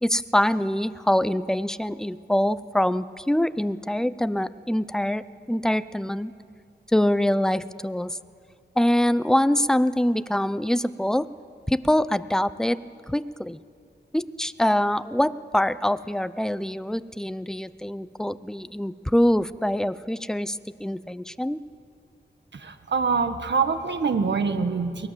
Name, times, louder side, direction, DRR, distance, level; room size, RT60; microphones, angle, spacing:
voice 1, 0.0-6.3 6.9-8.2 8.8-11.3 11.7-12.8 13.1-13.6 14.1-21.6, left 1 dB, 5° left, 15 dB, 0.7 m, -24 dB
voice 2, 22.5-25.1, right 5 dB, 70° right, 9 dB, 1.5 m, -25 dB
23.0 x 18.5 x 7.5 m, 2.3 s
cardioid pair, 55°, 19 cm